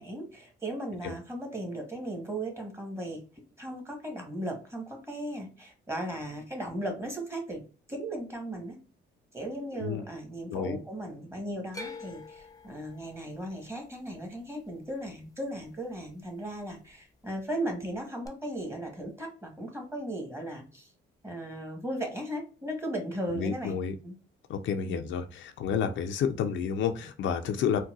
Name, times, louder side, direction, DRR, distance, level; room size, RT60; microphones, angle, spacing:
voice 1, 0.0-3.2 3.6-7.6 7.9-8.8 9.3-20.9 21.2-23.8 24.0-24.1 24.9-25.1, right 1 dB, 15° right, 2 dB, 1.2 m, -36 dB
sound 1, 11.7-15.9 16.2-16.9 18.2-18.3, left 3 dB, 20° left, 0.5 m, -47 dB
voice 2, 23.3-23.9 24.5-27.8, left 7 dB, 70° left, 7 dB, 0.5 m, -30 dB
3.9 x 2.2 x 2.3 m, 0.37 s
cardioid pair, 90°, 20 cm